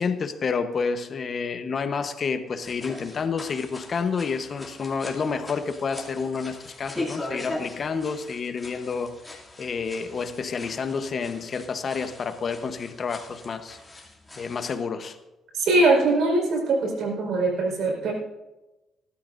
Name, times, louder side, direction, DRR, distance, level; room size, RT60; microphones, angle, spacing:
voice 1, 0.0-9.2 9.6-13.8 14.4-15.2, left 5 dB, 50° left, 8 dB, 1.0 m, -29 dB
sound 1, 2.5-14.8, left 2 dB, 15° left, 2.7 m, -40 dB
voice 2, 15.5-18.1, right 2 dB, 75° right, 0 dB, 4.7 m, -22 dB
19.0 x 12.5 x 2.6 m, 1.0 s
cardioid pair, 90°, 0 cm